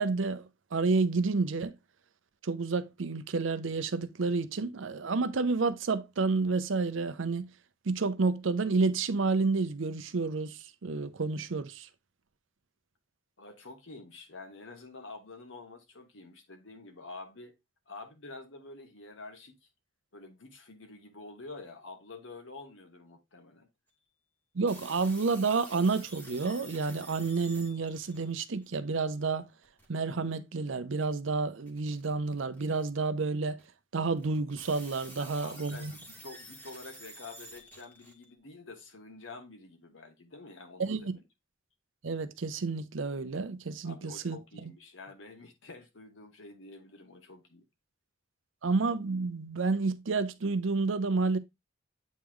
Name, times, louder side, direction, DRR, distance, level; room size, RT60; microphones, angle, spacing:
voice 1, 0.0-1.7 2.4-7.5 7.9-11.9 24.5-29.5 29.9-33.6 33.9-35.9 40.8-41.1 42.0-44.7 48.6-51.4, right 4 dB, 80° right, 0.6 m, -30 dB
voice 2, 13.4-17.5 17.9-19.6 20.1-23.7 35.2-41.2 43.8-47.6, left 3 dB, 80° left, 1.4 m, -48 dB
sound 1, 24.7-28.7 29.6-29.9 31.0-31.1 31.7-32.9 33.6-33.7 34.2-38.4, right 1 dB, 10° left, 1.3 m, -50 dB
8.2 x 3.1 x 3.7 m
head